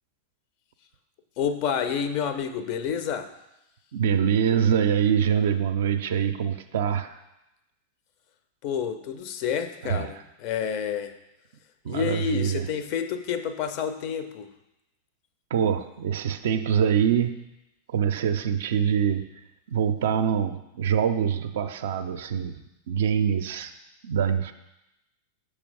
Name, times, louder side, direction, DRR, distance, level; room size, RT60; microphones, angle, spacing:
voice 1, 1.4-3.3 8.6-11.1 11.9-14.5, left 7 dB, 45° left, 9 dB, 0.4 m, -29 dB
voice 2, 3.9-7.2 9.8-10.1 11.8-12.7 15.5-17.5 17.9-19.3 19.7-22.6 22.9-23.7 24.0-24.5, right 8 dB, 60° right, 9 dB, 0.3 m, -24 dB
6.2 x 3.2 x 4.9 m, 0.92 s
figure-of-eight pair, 90°, 0 cm